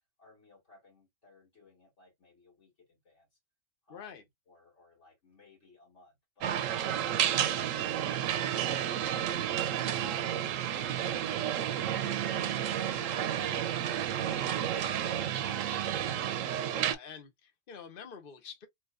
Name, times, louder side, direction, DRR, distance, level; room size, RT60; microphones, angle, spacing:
voice 1, 0.2-3.3 3.9-9.1 9.5-10.2 10.9-11.9 12.9-16.2, left 2 dB, 70° left, 2.8 m, -56 dB
voice 2, 3.9-4.2 16.7-18.7, left 7 dB, 45° left, 1.2 m, -46 dB
sound 1, 6.4-16.9, right 10 dB, 85° right, 1.0 m, -31 dB
4.5 x 2.9 x 2.5 m
omnidirectional pair, 1.3 m